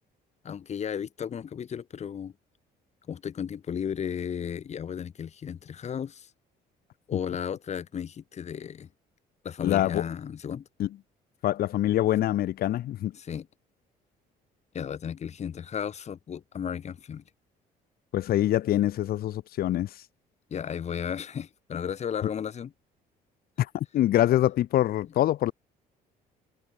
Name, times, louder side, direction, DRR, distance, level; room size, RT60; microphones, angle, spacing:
voice 1, 0.4-2.3 3.1-6.3 7.1-8.9 9.4-10.7 13.1-13.5 14.7-17.2 20.5-22.7, left 8 dB, 40° left, 1.8 m, -34 dB
voice 2, 9.6-10.0 10.8-10.9 11.4-13.1 18.1-19.9 23.6-25.5, left 13 dB, 65° left, 1.3 m, -25 dB
cardioid pair, 110°, 17 cm